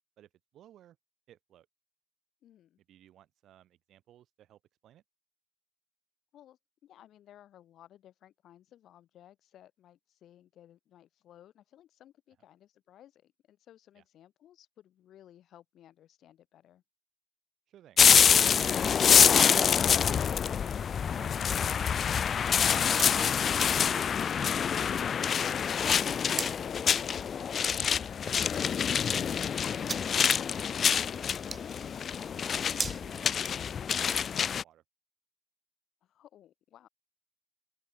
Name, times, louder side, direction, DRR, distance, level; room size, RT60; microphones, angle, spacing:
voice 1, 0.2-1.0 1.3-1.7 2.9-5.0 13.9-14.0 17.7-18.0 20.9-21.8 26.8-29.2 29.7-32.0 32.3-33.5 33.9-34.8, right 12 dB, 80° right, 6.3 m, -60 dB
voice 2, 2.4-2.8 6.3-16.8 36.0-36.9, left 11 dB, 75° left, 5.3 m, -58 dB
sound 1, 18.0-34.6, left 7 dB, 50° left, 0.5 m, -26 dB
sound 2, 19.0-34.2, right 4 dB, 25° right, 4.3 m, -46 dB
open air
cardioid pair, 140°, 0 cm